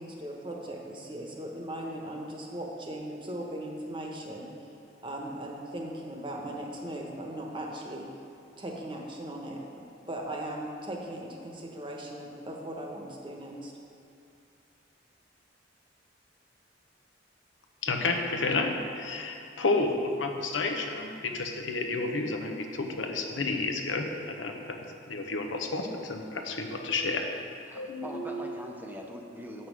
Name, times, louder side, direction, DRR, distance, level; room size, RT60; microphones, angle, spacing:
voice 1, 0.0-4.5 5.0-8.0 8.6-13.7, right 1 dB, 25° right, 0 dB, 1.0 m, -38 dB
voice 2, 17.8-24.8 25.1-27.3 27.8-28.5, left 3 dB, 90° left, 3 dB, 0.8 m, -31 dB
voice 3, 27.7-29.7, equal, 10° right, 1 dB, 0.7 m, -42 dB
8.0 x 5.5 x 6.1 m, 2.5 s
head